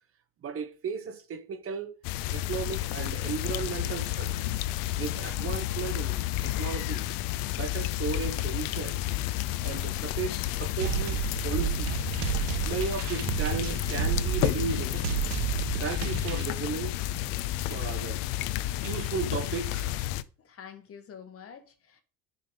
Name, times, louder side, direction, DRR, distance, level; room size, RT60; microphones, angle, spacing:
voice 1, 0.4-2.0 2.3-4.4 4.9-7.1 7.5-9.0 9.6-12.1 12.6-15.2 15.8-17.0 17.7-18.2 18.8-20.0, right 6 dB, 40° right, 1.2 m, -35 dB
sound 1, 2.0-20.2, left 14 dB, 80° left, 0.7 m, -31 dB
sound 2, 10.8-16.5, right 15 dB, 75° right, 0.6 m, -32 dB
voice 2, 20.4-22.0, left 7 dB, 40° left, 1.5 m, -47 dB
10.5 x 5.5 x 3.9 m
cardioid pair, 115°, 34 cm